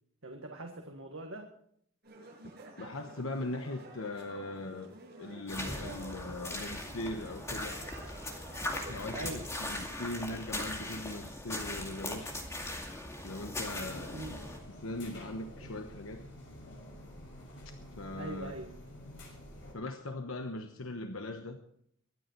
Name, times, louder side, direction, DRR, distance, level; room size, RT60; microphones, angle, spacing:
voice 1, 0.2-1.5 9.1-9.5 14.1-14.3 18.2-18.7, right 2 dB, 75° right, 3 dB, 1.6 m, -42 dB
sound 1, 2.0-9.5, right 2 dB, 50° right, 7.5 m, -51 dB
voice 2, 2.8-4.9 5.2-7.8 8.1-8.2 8.9-12.4 13.2-14.4 14.8-16.3 18.0-18.5 19.7-21.6, left 2 dB, 80° left, 6 dB, 1.1 m, -40 dB
sound 2, 5.5-14.6, left 1 dB, 15° left, 2.3 m, -39 dB
sound 3, 13.6-19.7, left 1 dB, 65° left, 6.1 m, -49 dB
23.0 x 9.5 x 4.6 m, 0.67 s
head